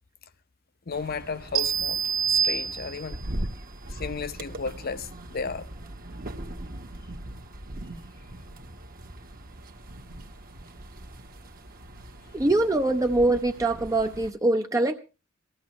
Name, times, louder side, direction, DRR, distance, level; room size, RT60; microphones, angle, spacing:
voice 1, 0.9-2.0 2.3-3.3 3.9-5.7 12.2-12.3, left 5 dB, 50° left, 0.8 m, -34 dB
sound 1, 0.9-14.3, right 1 dB, 45° right, 1.2 m, -40 dB
sound 2, 1.6-3.3, right 7 dB, 80° right, 1.2 m, -26 dB
voice 2, 12.3-15.0, right 2 dB, 15° right, 0.6 m, -23 dB
19.5 x 14.0 x 3.1 m
head